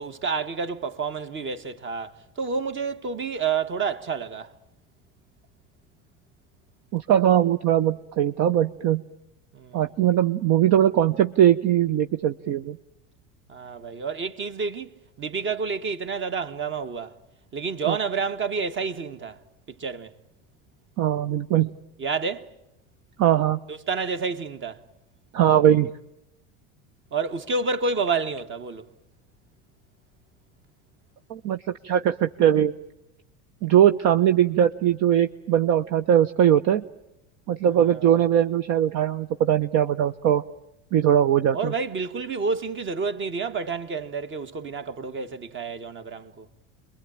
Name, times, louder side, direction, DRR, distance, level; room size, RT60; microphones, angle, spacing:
voice 1, 0.0-4.5 9.5-9.8 13.5-17.1 17.5-19.4 19.7-20.1 22.0-22.5 23.7-24.8 27.1-28.9 37.8-38.2 41.5-46.5, right 5 dB, 35° right, 1.7 m, -29 dB
voice 2, 6.9-9.0 9.7-12.8 17.9-18.0 21.0-21.7 23.2-23.6 25.3-25.9 31.3-32.7 33.6-36.8 37.5-40.4 40.9-41.7, right 10 dB, 55° right, 0.9 m, -20 dB
27.5 x 22.5 x 8.9 m
supercardioid pair, 100°, 33 cm